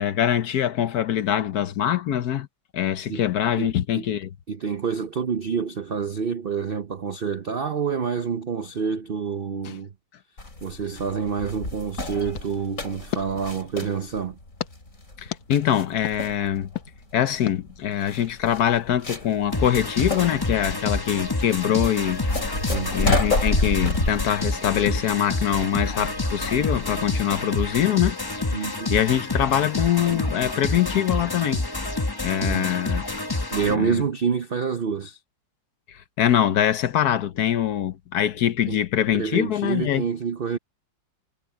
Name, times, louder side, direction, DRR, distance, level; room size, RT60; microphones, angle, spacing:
voice 1, 0.0-2.5 2.7-4.3 9.6-9.8 15.2-16.7 17.1-22.2 22.9-28.2 28.4-31.6 32.2-33.0 33.7-34.0 35.9-40.0, left 10 dB, 65° left, 1.2 m, -23 dB
voice 2, 3.6-4.1 4.5-9.9 10.6-14.4 22.7-22.9 28.5-28.9 32.4-32.7 33.5-35.2 38.7-38.8 39.1-40.6, right 6 dB, 65° right, 0.5 m, -27 dB
sound 1, 10.4-27.2, left 2 dB, 45° left, 5.1 m, -30 dB
sound 2, 12.3-14.0 14.6-14.7 15.3-15.4 16.0-16.2 16.7-16.9 17.5-17.6, left 13 dB, 85° left, 1.7 m, -34 dB
sound 3, 19.5-33.7, left 2 dB, 20° left, 0.7 m, -28 dB
omnidirectional pair, 2.0 m